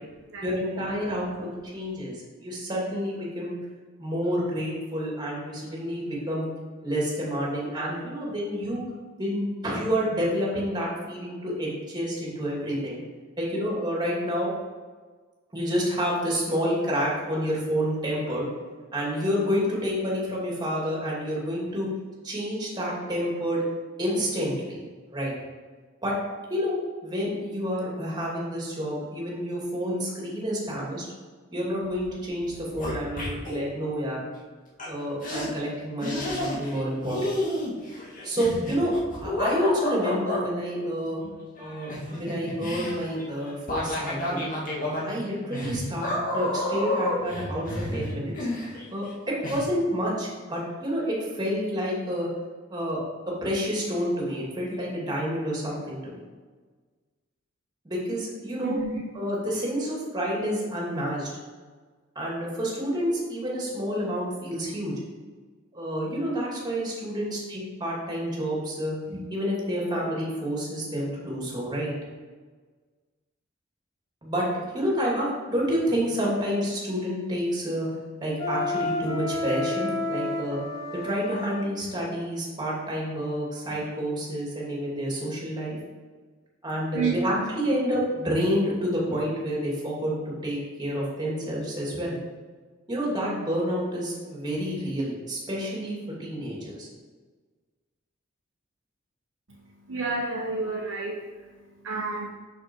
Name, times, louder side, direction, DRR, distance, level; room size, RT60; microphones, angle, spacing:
voice 1, 0.4-3.6 4.0-6.5 6.8-8.8 9.2-13.0 13.4-14.5 15.5-18.5 18.9-21.9 22.2-23.6 24.0-24.8 25.1-25.3 26.0-26.2 26.5-26.8 27.0-31.1 31.5-34.2 34.8-37.2 38.2-38.9 39.2-41.2 41.6-44.4 44.8-48.3 48.9-52.3 52.7-53.0 53.3-56.2 57.8-58.8 59.1-61.3 62.1-64.9 65.7-71.9 74.2-74.5 74.7-77.9 78.2-80.6 80.9-85.8 86.6-92.2 92.9-96.9, equal, 20° right, -4 dB, 2.5 m, -29 dB
sound 1, 31.8-32.1 32.4-33.6 34.8-34.9 35.2-35.5 36.0-36.8 37.1-40.4 41.6-49.1 49.4-49.6, left 1 dB, 45° left, 2.0 m, -30 dB
Wind instrument woodwind instrument, 78.4-81.6, left 2 dB, 20° left, 1.1 m, -30 dB
voice 2, 86.9-87.5 99.5-102.3, right 3 dB, 85° right, -3 dB, 1.1 m, -31 dB
6.7 x 6.5 x 4.6 m, 1.4 s
head